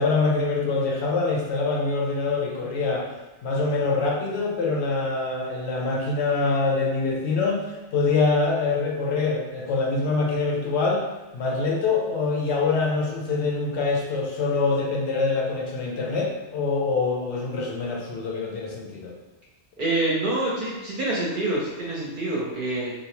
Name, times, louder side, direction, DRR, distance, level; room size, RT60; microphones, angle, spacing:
voice 1, 0.0-3.1 3.4-11.0 11.3-19.1, left 3 dB, 75° left, -1 dB, 0.8 m, -25 dB
voice 2, 19.8-22.9, right 2 dB, 55° right, -4 dB, 0.7 m, -26 dB
2.7 x 2.0 x 2.9 m, 1.1 s
omnidirectional pair, 1.2 m